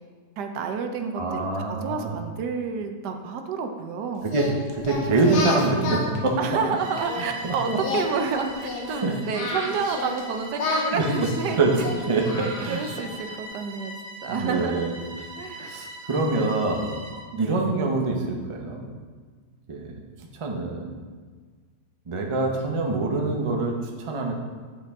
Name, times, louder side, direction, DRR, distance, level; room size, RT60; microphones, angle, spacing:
voice 1, 0.4-4.3 6.4-11.9 12.3-13.9 14.2-14.9 15.4-15.8 17.3-17.6, right 5 dB, 80° right, 6 dB, 1.3 m, -30 dB
voice 2, 1.1-2.2 4.2-4.4 4.7-6.4 7.2-7.8 8.9-9.1 10.9-11.1 11.6-11.7 12.1-12.8 14.3-14.9 15.6-16.9 17.4-18.8 19.7-19.9 20.3-20.9 22.1-24.3, right 3 dB, 35° right, 1 dB, 0.5 m, -25 dB
Singing, 4.3-7.3 7.7-10.2 10.6-13.2, left 3 dB, 85° left, 1.7 m, -31 dB
Bowed string instrument, 6.7-17.3, right 2 dB, 60° right, 1.4 m, -40 dB
8.0 x 6.4 x 3.6 m, 1.6 s
omnidirectional pair, 1.8 m